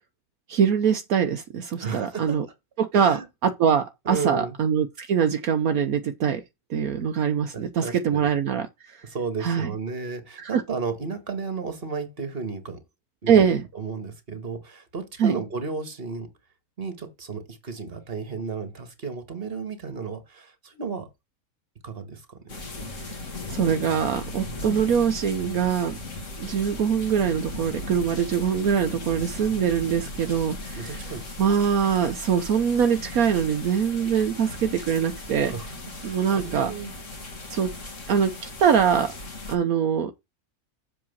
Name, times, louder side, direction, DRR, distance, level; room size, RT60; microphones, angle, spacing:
voice 1, 0.5-2.5 2.8-6.4 6.7-9.0 9.4-9.7 10.4-10.6 13.3-13.6 15.2-15.3 23.1-23.2 23.5-26.0 26.4-31.0 31.4-35.5 36.0-36.7 37.5-37.7 38.1-39.1 39.5-40.1, right 7 dB, 75° right, 1.3 m, -23 dB
voice 2, 1.8-2.4 2.9-3.3 4.1-4.6 7.5-8.3 9.0-12.8 13.2-13.5 13.7-16.3 16.8-21.1 21.8-22.6 24.5-24.7 30.2-30.3 30.8-31.5 35.5-35.7 36.0-36.9, right 5 dB, 40° right, 2.0 m, -33 dB
sound 1, 22.5-39.5, left 2 dB, 55° left, 2.5 m, -37 dB
7.6 x 4.8 x 7.3 m
omnidirectional pair, 1.6 m